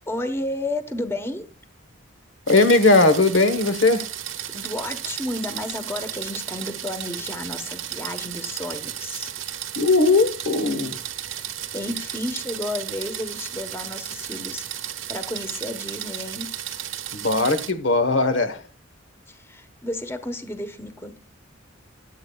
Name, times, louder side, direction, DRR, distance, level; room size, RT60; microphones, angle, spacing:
voice 1, 0.1-1.5 4.5-9.3 11.4-16.5 19.3-21.2, left 1 dB, 10° left, 1.1 m, -32 dB
voice 2, 2.5-4.1 9.8-11.0 17.1-18.6, left 3 dB, 70° left, 1.1 m, -18 dB
sound 1, 2.5-17.7, right 11 dB, 85° right, 1.2 m, -34 dB
23.0 x 8.3 x 2.3 m
head